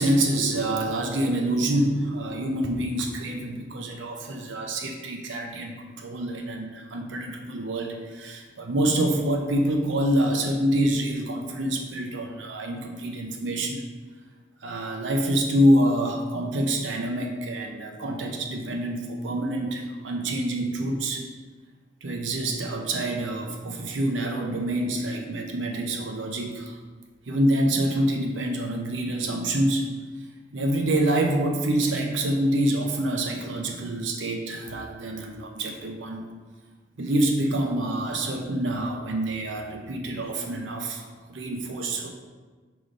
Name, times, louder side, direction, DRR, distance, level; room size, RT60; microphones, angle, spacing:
voice 1, 0.0-13.8 14.6-21.2 22.0-26.8 27.3-29.9 30.5-36.2 37.0-42.1, right 1 dB, 75° right, 2 dB, 0.6 m, -26 dB
4.9 x 3.8 x 5.1 m, 1.4 s
head